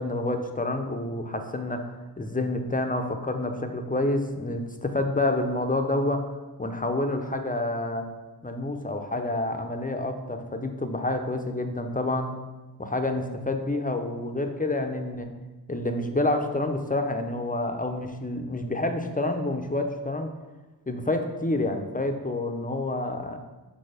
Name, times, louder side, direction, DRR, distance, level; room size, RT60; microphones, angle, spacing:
voice 1, 0.0-6.2 6.6-8.1 8.4-12.3 12.8-15.3 15.7-20.3 20.9-23.4, left 2 dB, 20° left, 6 dB, 0.6 m, -28 dB
5.6 x 4.5 x 4.9 m, 1.2 s
wide cardioid pair, 55°, 37 cm